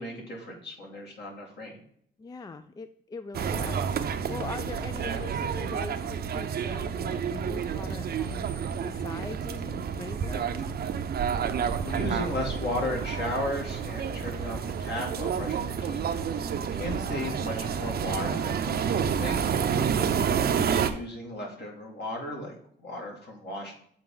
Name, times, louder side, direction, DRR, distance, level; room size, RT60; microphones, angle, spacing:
voice 1, 0.0-1.8 11.4-11.5 11.8-19.5 20.5-23.7, left 1 dB, 60° left, 0 dB, 2.2 m, -35 dB
voice 2, 2.2-8.5 8.8-10.7 19.7-20.2, left 3 dB, 20° left, 11 dB, 0.3 m, -41 dB
sound 1, 3.3-20.9, right 7 dB, 50° right, 0.6 m, -29 dB
7.5 x 4.3 x 3.8 m, 0.65 s
cardioid pair, 90°, 20 cm